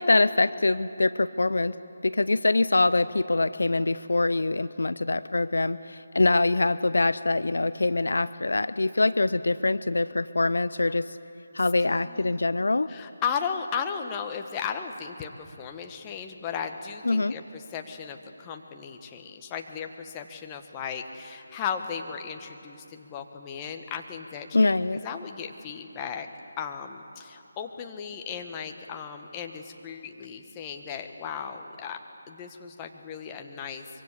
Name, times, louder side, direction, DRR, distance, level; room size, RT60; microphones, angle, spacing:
voice 1, 0.0-1.7 2.0-11.2 11.5-12.9 17.1-17.3 24.5-25.0, left 2 dB, 70° left, 16 dB, 0.5 m, -24 dB
voice 2, 11.8-12.4 12.9-24.8 25.0-26.3 26.6-32.0 32.3-33.9, left 7 dB, 20° left, 5 dB, 1.4 m, -36 dB
24.5 x 23.5 x 8.4 m, 2.8 s
figure-of-eight pair, 155°, 0 cm